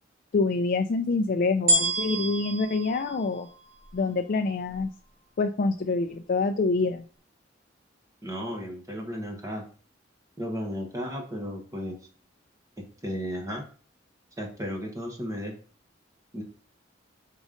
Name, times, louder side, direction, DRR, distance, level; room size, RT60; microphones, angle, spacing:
voice 1, 0.3-3.5 3.9-4.9 5.4-7.1, left 3 dB, 45° left, 6 dB, 0.4 m, -26 dB
sound 1, 1.7-4.1 4.7-4.8, right 1 dB, 45° right, 1.7 m, -28 dB
voice 2, 8.2-9.6 10.4-12.0 12.8-13.6 14.4-15.5 16.3-16.4, equal, 15° right, 1 dB, 1.1 m, -34 dB
5.1 x 3.7 x 5.1 m, 0.40 s
head